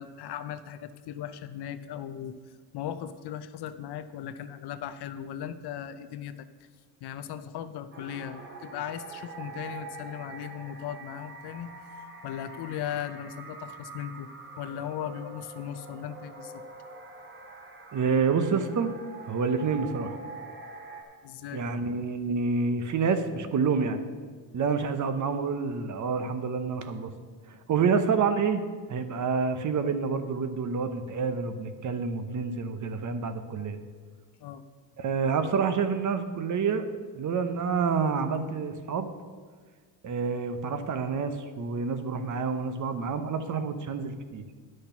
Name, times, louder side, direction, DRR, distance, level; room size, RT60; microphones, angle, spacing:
voice 1, 0.0-2.4 2.7-6.3 7.0-11.7 12.2-14.3 14.6-16.6 21.2-21.7 34.4-34.6, left 10 dB, 65° left, 11 dB, 0.7 m, -37 dB
sound 1, 7.9-21.0, right 3 dB, 25° right, 1.4 m, -45 dB
voice 2, 17.9-18.9 19.3-20.2 21.5-24.0 24.5-27.1 27.5-28.6 28.9-33.8 35.0-36.9 37.1-39.1 40.0-44.5, right 5 dB, 45° right, 9 dB, 0.8 m, -28 dB
10.5 x 6.4 x 5.8 m, 1.5 s
cardioid pair, 125°, 43 cm